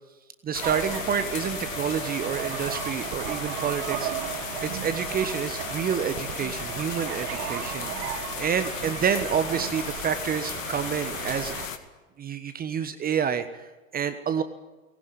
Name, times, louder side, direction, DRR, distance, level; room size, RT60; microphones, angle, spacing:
voice 1, 0.4-4.1 4.6-11.5 12.2-14.4, right 7 dB, 20° right, 10 dB, 1.2 m, -29 dB
sound 1, 0.5-11.8, left 7 dB, 70° left, 2.3 m, -35 dB
sound 2, 0.6-11.7, right 12 dB, 50° right, 1.9 m, -35 dB
19.5 x 17.5 x 9.7 m, 1.2 s
figure-of-eight pair, 95°, 41 cm